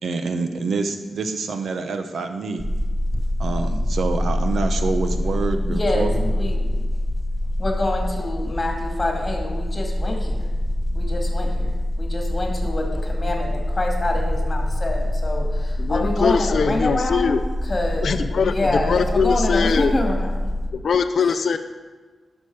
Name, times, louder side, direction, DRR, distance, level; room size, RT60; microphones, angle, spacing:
voice 1, 0.0-2.6 3.4-6.3, right 4 dB, 75° right, 7 dB, 0.9 m, -26 dB
sound 1, 2.6-20.7, left 1 dB, 15° right, 1.1 m, -25 dB
voice 2, 5.7-6.8 7.6-10.5 10.9-18.1 18.4-20.3 21.2-21.3, left 2 dB, 30° left, 1 dB, 2.1 m, -26 dB
voice 3, 15.8-17.4 18.0-19.9 20.7-21.6, left 6 dB, 70° left, 8 dB, 0.5 m, -22 dB
11.5 x 6.6 x 4.8 m, 1.4 s
wide cardioid pair, 100°, 0 cm